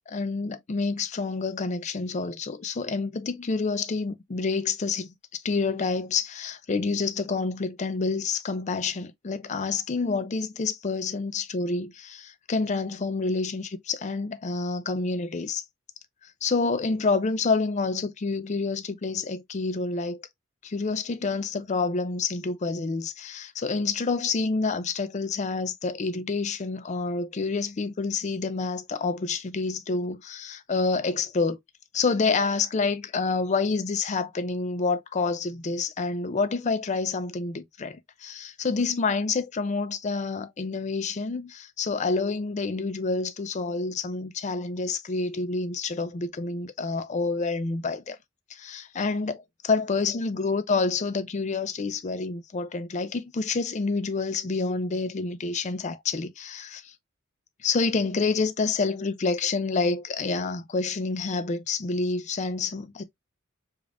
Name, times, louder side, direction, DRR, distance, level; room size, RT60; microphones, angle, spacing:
voice 1, 0.0-15.6 16.4-20.2 20.6-31.6 31.9-48.2 48.5-49.4 49.7-56.9 57.6-63.0, left 4 dB, 35° left, 0.4 m, -28 dB
5.1 x 2.4 x 2.4 m
head